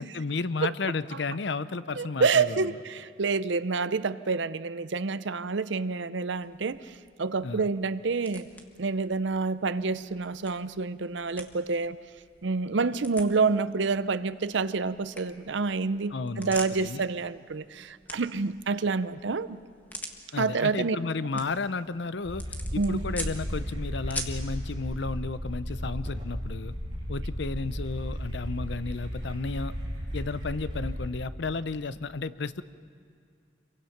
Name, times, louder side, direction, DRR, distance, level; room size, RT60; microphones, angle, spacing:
voice 1, 0.0-2.8 7.4-7.7 16.1-17.0 20.3-22.4 22.7-26.7 27.1-29.7 30.1-32.6, left 3 dB, 65° left, 14 dB, 0.6 m, -33 dB
voice 2, 1.9-6.9 7.2-8.5 8.8-12.0 12.4-19.6 20.4-21.0 22.8-23.0, right 4 dB, 75° right, 14 dB, 0.6 m, -28 dB
sound 1, 6.3-24.5, left 1 dB, 10° left, 1.4 m, -46 dB
sound 2, 22.2-31.1, equal, 25° right, 6.0 m, -35 dB
27.0 x 23.0 x 5.9 m, 2.3 s
head